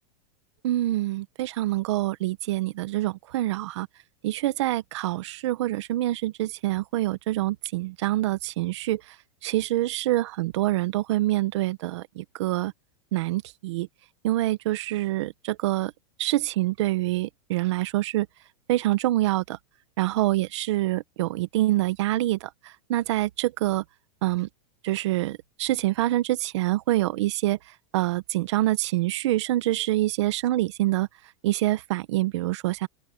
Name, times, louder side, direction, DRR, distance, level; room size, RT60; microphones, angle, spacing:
voice 1, 0.6-3.9 4.2-9.0 9.4-12.7 13.1-13.9 14.2-15.9 16.2-18.3 18.7-19.6 20.0-22.5 22.9-23.8 24.2-24.5 24.8-27.6 27.9-31.1 31.4-32.9, right 16 dB, 60° right, 1.1 m, -26 dB
open air
supercardioid pair, 170°, 17 cm